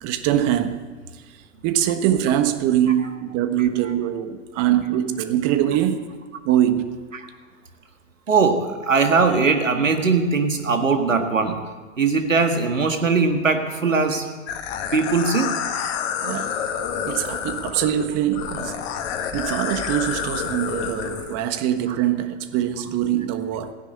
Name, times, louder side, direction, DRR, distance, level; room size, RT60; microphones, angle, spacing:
voice 1, 0.0-0.8 1.6-6.1 6.4-7.0 16.2-16.6 17.0-18.7 19.3-23.7, right 11 dB, 40° right, 1.4 m, -23 dB
voice 2, 8.3-11.6 12.0-14.2 14.9-15.5, right 4 dB, 85° right, 1.8 m, -20 dB
sound 1, 14.5-21.3, left 8 dB, 55° left, 1.9 m, -28 dB
15.5 x 10.0 x 7.8 m
figure-of-eight pair, 95°, 38 cm